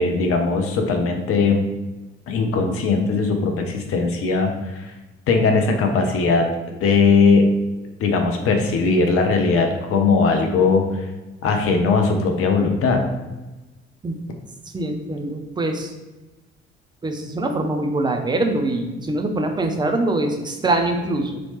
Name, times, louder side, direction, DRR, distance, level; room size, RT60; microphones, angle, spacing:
voice 1, 0.0-1.6 2.3-4.9 5.3-7.5 8.0-10.8 11.4-13.0, left 4 dB, 45° left, 4 dB, 0.6 m, -19 dB
voice 2, 14.7-15.9 17.0-21.4, right 2 dB, 15° right, 4 dB, 0.4 m, -23 dB
3.0 x 2.8 x 2.9 m, 1.1 s
figure-of-eight pair, 45°, 32 cm